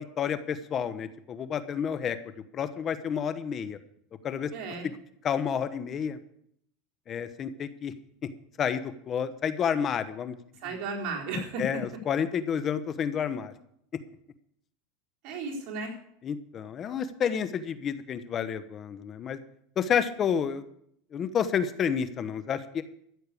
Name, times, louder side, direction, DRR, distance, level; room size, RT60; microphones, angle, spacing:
voice 1, 0.0-2.2 2.5-3.8 4.2-4.5 5.2-6.2 7.1-7.9 8.6-10.4 11.6-13.5 16.2-19.4 19.8-20.6 21.1-22.8, left 7 dB, 35° left, 12 dB, 1.0 m, -30 dB
voice 2, 4.5-4.9 10.6-11.8 15.2-15.9, right 2 dB, 60° right, 0 dB, 3.9 m, -34 dB
14.0 x 6.7 x 8.4 m, 0.71 s
supercardioid pair, 110°, 0 cm